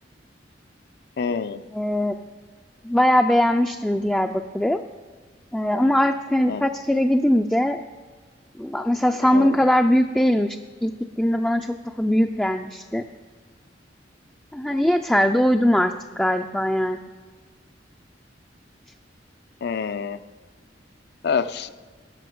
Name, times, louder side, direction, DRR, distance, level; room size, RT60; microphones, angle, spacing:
voice 1, 1.2-1.6 6.5-6.6 9.2-9.6 19.6-20.2 21.2-21.7, left 5 dB, 65° left, 12 dB, 0.5 m, -26 dB
voice 2, 1.7-2.1 2.8-4.8 5.5-7.8 8.6-13.0 14.5-17.0, left 1 dB, 5° left, 5 dB, 0.3 m, -21 dB
11.0 x 6.0 x 7.8 m, 1.5 s
head